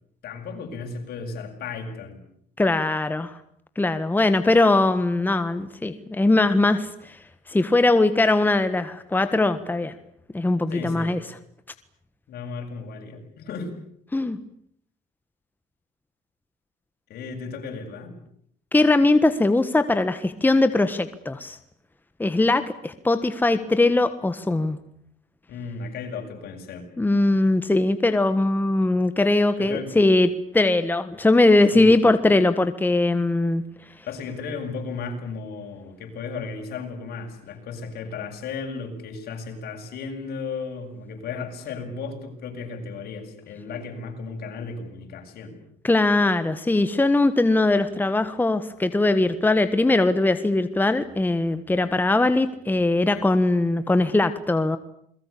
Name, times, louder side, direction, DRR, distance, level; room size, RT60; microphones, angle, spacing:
voice 1, 0.2-2.2 10.7-11.2 12.3-13.7 17.1-18.1 25.5-26.8 29.6-29.9 31.7-32.0 34.1-45.5, left 4 dB, 65° left, 3 dB, 7.9 m, -35 dB
voice 2, 2.6-3.3 3.8-7.2 7.5-9.9 10.3-11.2 14.1-14.4 18.7-21.6 22.2-24.8 27.0-30.3 30.5-33.6 45.8-54.8, left 2 dB, 10° left, 11 dB, 1.5 m, -20 dB
28.5 x 22.0 x 8.6 m, 0.68 s
cardioid pair, 110°, 17 cm